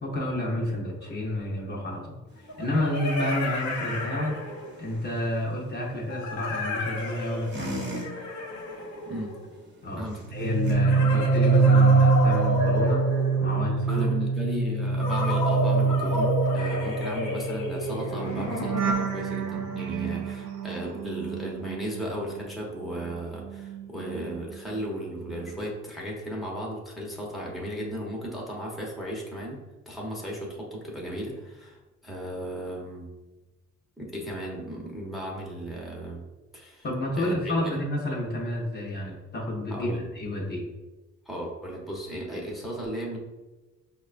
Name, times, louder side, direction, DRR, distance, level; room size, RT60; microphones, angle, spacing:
voice 1, 0.0-4.3 4.8-7.8 9.8-10.0 10.3-13.0 13.4-14.0 36.8-40.6, left 1 dB, 35° left, -3 dB, 0.7 m, -30 dB
sound 1, 1.0-1.1 2.5-4.9 6.1-9.6 10.8-13.8 15.0-19.3, left 2 dB, 75° left, 0.7 m, -31 dB
sound 2, 2.3-10.7, equal, 35° right, 0.8 m, -43 dB
sound 3, 10.2-22.5 22.8-24.9 25.2-25.6, right 5 dB, 75° right, 0.5 m, -25 dB
voice 2, 13.9-29.6 29.9-33.1 34.0-36.2 36.5-36.9 37.2-37.7 39.7-40.0 41.3-43.2, equal, ahead, -3 dB, 0.8 m, -35 dB
4.7 x 2.2 x 2.4 m, 1.2 s
cardioid pair, 90°, 30 cm